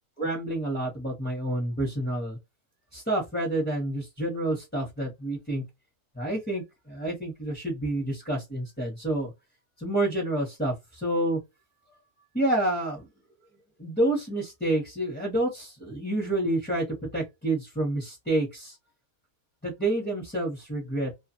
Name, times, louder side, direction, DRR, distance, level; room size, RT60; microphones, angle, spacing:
voice 1, 0.2-2.4 2.9-5.6 6.1-9.3 9.8-11.4 12.3-13.0 13.8-16.9 17.1-18.7 19.6-21.1, right 1 dB, 10° left, 0.8 m, -28 dB
2.4 x 2.4 x 2.7 m
omnidirectional pair, 1.6 m